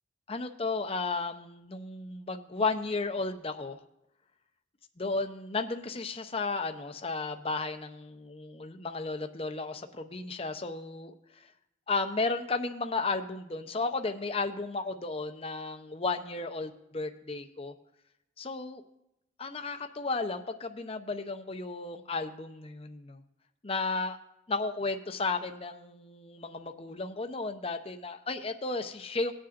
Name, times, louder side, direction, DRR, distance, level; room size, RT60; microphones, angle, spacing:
voice 1, 0.3-3.8 5.0-11.1 11.9-17.7 18.4-18.8 19.4-23.2 23.6-24.2 24.5-29.3, left 3 dB, 30° left, 7 dB, 0.7 m, -34 dB
19.5 x 8.5 x 2.5 m, 0.84 s
head